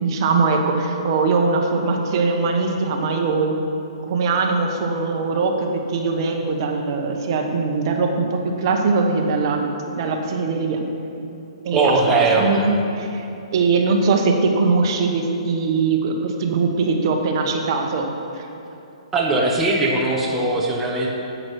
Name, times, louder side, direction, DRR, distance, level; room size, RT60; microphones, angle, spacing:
voice 1, 0.0-3.6 4.1-9.7 9.9-10.9 11.6-12.0 12.3-13.3 13.5-18.1 18.4-18.5, right 4 dB, 45° right, 3 dB, 1.1 m, -21 dB
voice 2, 11.7-12.8 19.1-21.1, right 2 dB, 10° right, -3 dB, 0.9 m, -20 dB
10.5 x 8.0 x 4.8 m, 2.9 s
hypercardioid pair, 150°, 3 cm